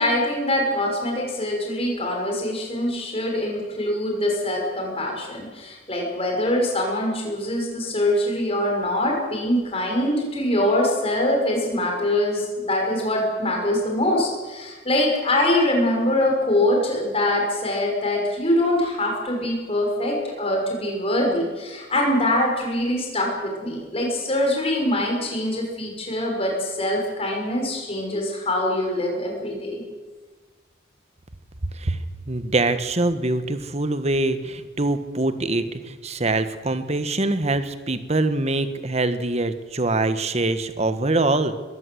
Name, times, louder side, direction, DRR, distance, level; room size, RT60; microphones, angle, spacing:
voice 1, 0.0-29.8, left 1 dB, 30° left, 1 dB, 6.1 m, -23 dB
voice 2, 32.3-41.6, right 2 dB, 35° right, 10 dB, 1.3 m, -24 dB
21.0 x 16.5 x 7.9 m, 1.3 s
head